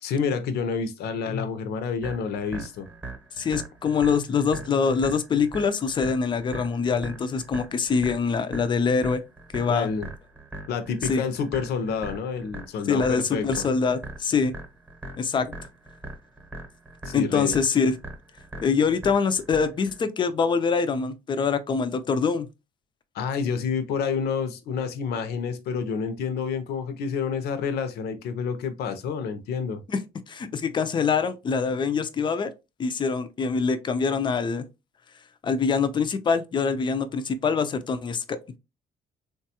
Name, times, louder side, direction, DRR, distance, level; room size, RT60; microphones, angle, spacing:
voice 1, 0.0-2.9 9.7-10.1 10.7-13.6 17.0-17.6 23.1-29.8, left 6 dB, 75° left, 0.6 m, -29 dB
sound 1, 2.0-20.0, right 1 dB, 10° right, 0.8 m, -41 dB
voice 2, 3.4-9.2 9.5-9.9 11.1-11.2 12.9-14.5 15.2-15.5 17.1-18.0 18.6-22.5 29.9-30.0 30.3-32.5 32.8-34.7 35.4-38.6, left 5 dB, 30° left, 0.4 m, -24 dB
3.1 x 2.2 x 2.8 m
cardioid pair, 110°, 17 cm